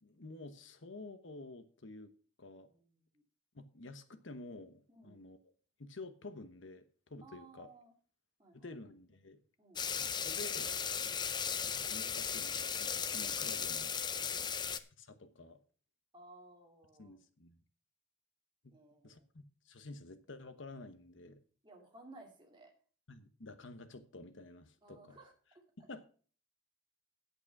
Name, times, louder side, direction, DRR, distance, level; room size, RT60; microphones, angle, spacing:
voice 1, 0.0-2.1 2.4-2.7 3.5-5.4 5.8-7.7 8.5-9.4 10.2-10.7 11.7-13.9 15.0-15.6 17.0-17.6 18.6-18.7 19.0-21.4 23.1-25.2 25.8-26.0, left 2 dB, 70° left, 10 dB, 1.1 m, -50 dB
voice 2, 2.5-3.2 4.9-5.2 7.2-7.9 8.4-8.8 9.6-9.8 11.1-11.3 14.2-14.5 16.1-17.2 18.7-19.2 21.6-22.7 24.8-25.6, right 2 dB, 25° right, 1 dB, 2.2 m, -58 dB
sound 1, 9.8-14.8, left 7 dB, 20° left, 0.5 m, -36 dB
8.7 x 8.1 x 6.0 m, 0.42 s
head